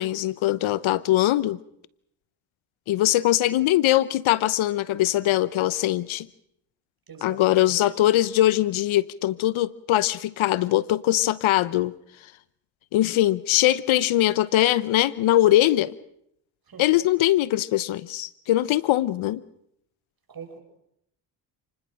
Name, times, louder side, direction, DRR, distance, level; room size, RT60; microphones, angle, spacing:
voice 1, 0.0-1.6 2.9-6.3 7.2-11.9 12.9-15.9 16.8-19.4, left 14 dB, 75° left, 1.0 m, -21 dB
voice 2, 7.1-7.9 16.7-16.8 20.3-20.6, right 6 dB, 45° right, 6.7 m, -42 dB
29.0 x 20.0 x 6.4 m
supercardioid pair, 65°, 48 cm